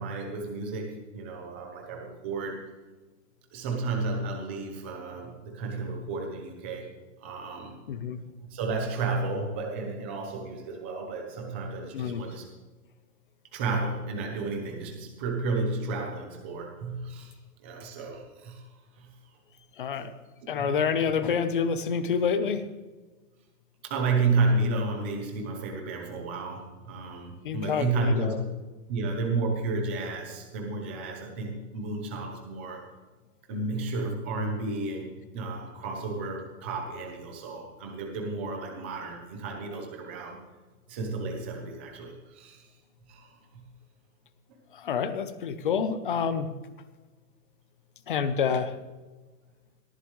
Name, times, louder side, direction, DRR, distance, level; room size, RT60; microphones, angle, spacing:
voice 1, 0.0-2.6 3.5-6.9 7.2-7.8 8.4-12.4 13.5-17.3 17.6-18.6 19.0-19.1 19.9-20.1 20.5-20.8 23.8-28.4 28.9-32.8 33.5-40.4 40.9-42.7 43.1-43.3, right 3 dB, 10° right, 1 dB, 0.7 m, -32 dB
voice 2, 7.9-8.2 11.9-12.3 19.8-20.1 20.5-22.6 27.4-28.4 44.7-46.5 48.1-48.7, left 6 dB, 35° left, 12 dB, 0.8 m, -28 dB
18.5 x 14.5 x 3.2 m, 1.3 s
hypercardioid pair, 170°, 47 cm